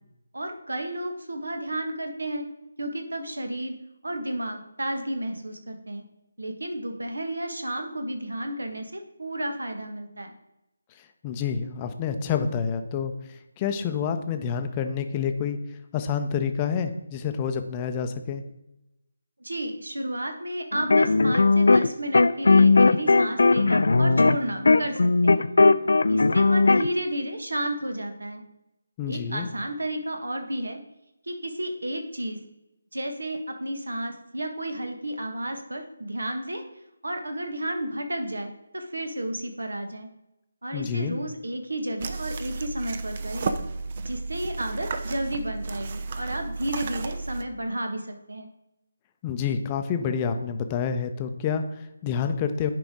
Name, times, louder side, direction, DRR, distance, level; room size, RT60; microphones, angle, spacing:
voice 1, 0.3-2.4 2.8-3.7 4.0-6.0 6.4-10.3 19.4-25.4 26.1-28.4 29.1-30.8 31.3-32.4 32.9-36.6 37.0-40.1 40.6-43.5 43.9-48.5, right 1 dB, 75° right, 5 dB, 1.4 m, -32 dB
voice 2, 11.2-15.6 15.9-18.4 29.0-29.5 40.7-41.2 49.2-52.7, left 6 dB, 20° left, 7 dB, 0.6 m, -28 dB
sound 1, 20.7-21.9 22.1-26.9, left 3 dB, 65° left, 0.4 m, -18 dB
sound 2, 42.0-47.4, right 4 dB, 40° right, 0.6 m, -33 dB
10.5 x 5.1 x 3.7 m, 0.91 s
figure-of-eight pair, 155°, 0 cm